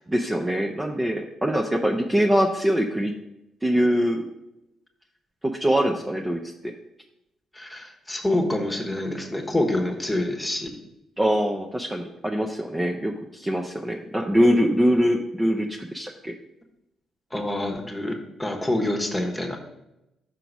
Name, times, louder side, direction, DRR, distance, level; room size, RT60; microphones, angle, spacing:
voice 1, 0.1-3.1 3.6-4.2 5.4-6.4 11.2-16.3, equal, 15° right, 0 dB, 0.5 m, -23 dB
voice 2, 7.5-10.7 17.3-19.6, left 1 dB, 10° left, 2 dB, 1.2 m, -26 dB
5.8 x 3.9 x 6.0 m, 0.90 s
cardioid pair, 90°, 0 cm